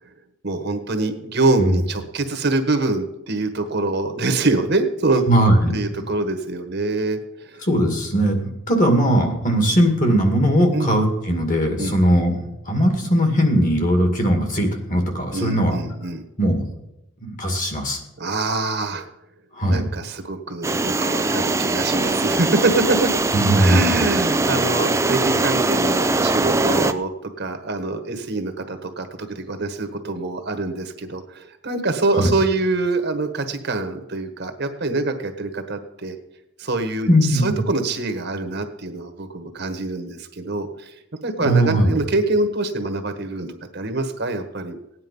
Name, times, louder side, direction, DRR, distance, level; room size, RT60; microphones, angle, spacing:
voice 1, 0.4-5.2 5.7-7.6 10.7-10.9 11.8-12.0 15.3-16.2 18.2-19.1 19.7-23.0 23.5-27.1 27.4-36.2 36.6-40.9 41.2-44.8, right 2 dB, 50° right, 8 dB, 1.3 m, -24 dB
voice 2, 5.3-5.7 7.6-12.3 12.7-15.8 16.4-16.6 17.2-18.0 19.5-19.9 23.3-24.1 32.2-32.3 37.1-37.6 41.4-41.9, equal, 40° left, 4 dB, 2.3 m, -19 dB
sound 1, 20.6-26.9, right 2 dB, 15° right, 0.4 m, -21 dB
17.0 x 9.7 x 5.4 m, 0.88 s
head